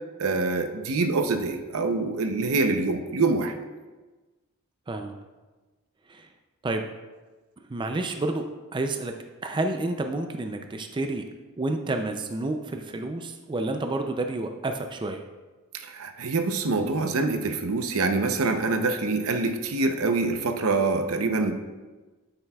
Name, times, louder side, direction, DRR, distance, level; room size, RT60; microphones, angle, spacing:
voice 1, 0.2-3.5 15.7-21.5, right 3 dB, 75° right, 7 dB, 0.7 m, -25 dB
voice 2, 7.7-8.5 8.7-9.1 9.4-11.2 11.6-15.2, right 2 dB, 20° right, 5 dB, 0.4 m, -29 dB
9.7 x 7.8 x 2.3 m, 1.2 s
head